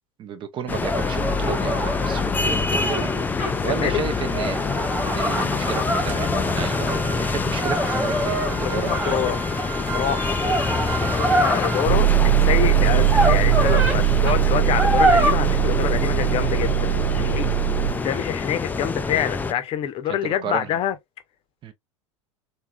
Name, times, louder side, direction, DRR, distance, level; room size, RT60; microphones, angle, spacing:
voice 1, 0.2-3.1 3.6-4.6 5.0-8.9 20.1-20.7 21.6-21.7, right 7 dB, 30° right, 0.6 m, -32 dB
sound 1, 0.7-19.5, left 4 dB, 10° left, 0.4 m, -26 dB
sound 2, 0.8-3.5 4.2-7.0 7.5-9.6 10.2-12.0 13.0-14.0 14.3-14.4 14.8-15.3, right 1 dB, 10° right, 1.3 m, -25 dB
sound 3, 2.1-2.2 2.9-3.0 3.3-3.4 3.9-18.3, right 15 dB, 60° right, 1.1 m, -24 dB
voice 2, 3.4-4.0 5.1-5.2 8.6-10.4 10.9-21.0, left 10 dB, 35° left, 0.8 m, -27 dB
3.6 x 2.7 x 2.3 m
figure-of-eight pair, 80°, 16 cm